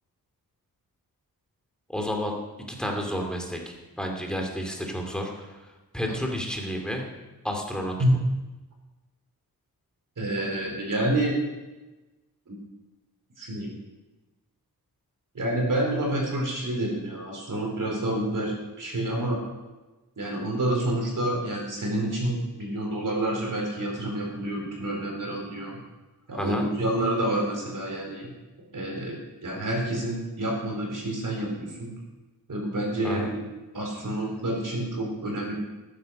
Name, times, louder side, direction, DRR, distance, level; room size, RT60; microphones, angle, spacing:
voice 1, 1.9-2.4 2.7-5.6 5.9-7.0 7.4-8.0 26.4-26.6 33.0-33.3, equal, ahead, 1 dB, 2.4 m, -31 dB
voice 2, 10.2-11.3 12.5-12.6 13.4-13.7 15.3-19.4 20.2-25.8 26.3-28.3 28.7-29.2 29.4-31.9 32.5-33.4 33.7-35.5, right 1 dB, 55° right, -1 dB, 4.4 m, -28 dB
13.5 x 9.9 x 6.5 m, 1.1 s
wide cardioid pair, 130°, 37 cm